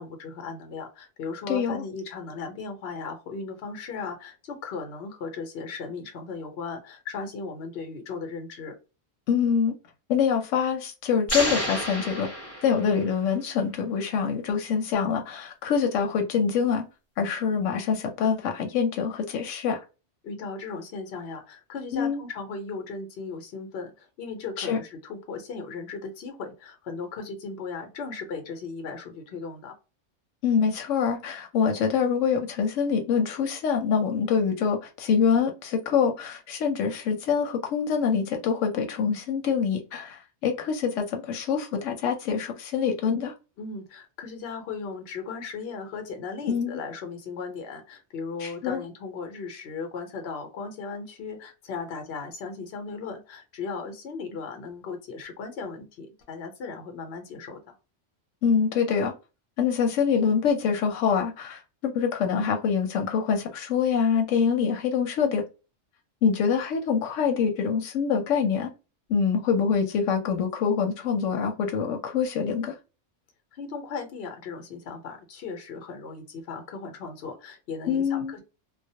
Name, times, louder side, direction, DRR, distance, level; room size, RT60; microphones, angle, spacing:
voice 1, 0.0-8.8 20.2-29.8 43.6-57.7 73.5-78.4, left 4 dB, 60° left, 0.9 m, -37 dB
voice 2, 1.5-1.8 9.3-9.7 10.1-12.3 12.6-16.8 17.2-19.8 21.9-22.2 24.6-24.8 30.4-43.3 46.4-46.8 48.4-48.8 58.4-59.1 59.6-65.4 66.2-68.7 69.1-72.7 77.9-78.3, left 6 dB, 85° left, 0.9 m, -25 dB
sound 1, 11.3-13.2, equal, 15° left, 0.7 m, -30 dB
2.4 x 2.1 x 2.6 m
omnidirectional pair, 1.3 m